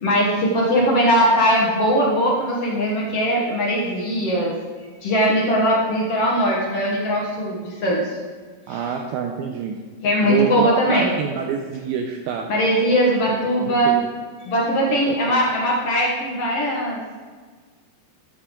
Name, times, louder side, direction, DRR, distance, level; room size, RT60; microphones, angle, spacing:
voice 1, 0.0-4.5 5.0-8.2 8.7-8.8 10.0-11.1 12.5-14.0 14.4-17.0, equal, 70° left, -3 dB, 1.4 m, -20 dB
voice 2, 8.7-9.8 10.2-12.5 13.6-13.9 15.1-15.2, right 7 dB, 80° right, 3 dB, 2.3 m, -26 dB
13.0 x 8.2 x 3.8 m, 1.5 s
omnidirectional pair, 4.9 m